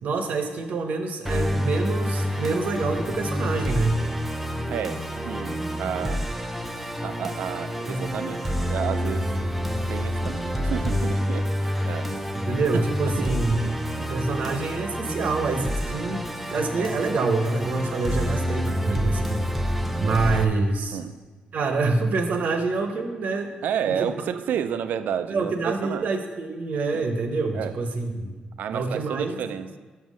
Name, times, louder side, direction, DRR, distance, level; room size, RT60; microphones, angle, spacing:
voice 1, 0.0-4.1 12.3-13.7 14.1-19.5 20.0-21.0 21.5-23.5 23.9-24.1 25.3-28.3 28.7-29.4, right 3 dB, 65° right, 6 dB, 0.8 m, -26 dB
Musical instrument, 1.2-20.4, equal, 5° right, 0.4 m, -28 dB
voice 2, 4.7-6.3 6.8-9.3 9.9-12.4 12.7-12.8 13.2-13.3 13.6-14.1 16.8-16.9 20.0-20.2 20.9-21.1 23.6-25.5 25.8-26.1 26.9-27.1 27.5-27.8 28.6-29.7, right 8 dB, 80° right, 12 dB, 0.4 m, -31 dB
5.9 x 5.5 x 6.2 m, 1.3 s
wide cardioid pair, 140°, 3 cm